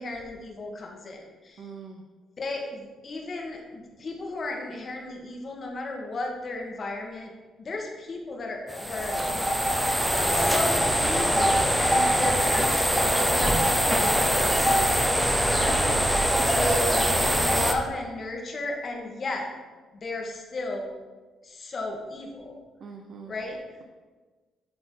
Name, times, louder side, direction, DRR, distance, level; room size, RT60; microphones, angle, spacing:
voice 1, 0.0-1.7 2.4-7.3 7.6-9.8 10.2-16.1 16.5-19.5 19.9-20.9 21.4-22.5 23.3-23.6, left 2 dB, 45° left, 0 dB, 1.3 m, -34 dB
voice 2, 1.6-2.0 15.3-16.7 22.8-23.3, right 5 dB, 60° right, 3 dB, 0.5 m, -40 dB
sound 1, 8.7-17.7, equal, 5° right, 0.7 m, -23 dB
7.7 x 3.8 x 3.8 m, 1.3 s
cardioid pair, 90°, 0 cm